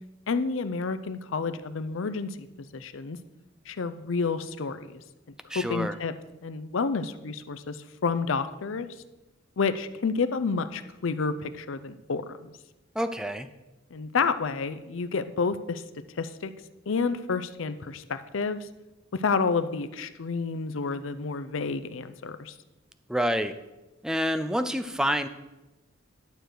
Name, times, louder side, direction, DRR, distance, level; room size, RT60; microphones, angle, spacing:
voice 1, 0.3-3.2 3.7-5.0 5.5-6.1 6.4-8.9 9.6-12.5 13.9-15.8 16.2-16.5 16.9-18.7 19.1-22.5, left 4 dB, 70° left, 11 dB, 0.5 m, -30 dB
voice 2, 5.5-6.0 13.0-13.5 23.1-23.6 24.0-25.3, equal, 5° right, 10 dB, 0.4 m, -27 dB
11.5 x 6.6 x 4.6 m, 1.0 s
head